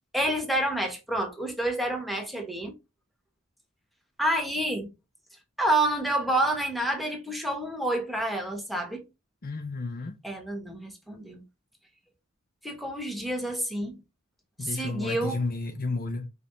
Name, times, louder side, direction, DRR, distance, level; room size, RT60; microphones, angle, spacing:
voice 1, 0.1-2.7 4.2-4.9 5.6-9.0 10.2-11.4 12.6-14.0 14.6-15.4, right 1 dB, ahead, 1.1 m, -28 dB
voice 2, 9.4-10.2 14.6-16.3, left 3 dB, 45° left, 0.6 m, -32 dB
5.0 x 3.2 x 2.7 m
head